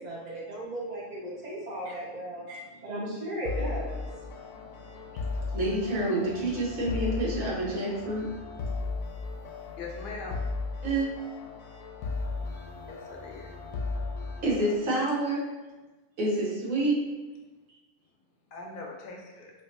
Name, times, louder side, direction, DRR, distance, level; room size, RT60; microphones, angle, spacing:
voice 1, 0.0-5.6, right 1 dB, 55° right, -4 dB, 0.5 m, -37 dB
sound 1, 3.4-14.8, left 3 dB, 85° left, 1.0 m, -36 dB
voice 2, 5.5-8.3 10.8-11.1 14.4-15.5 16.2-17.0, right 1 dB, 75° right, -5 dB, 1.3 m, -28 dB
voice 3, 9.8-10.4 12.9-13.5 18.5-19.5, left 3 dB, 55° left, 0 dB, 0.6 m, -41 dB
4.8 x 2.2 x 2.6 m, 1.2 s
omnidirectional pair, 1.4 m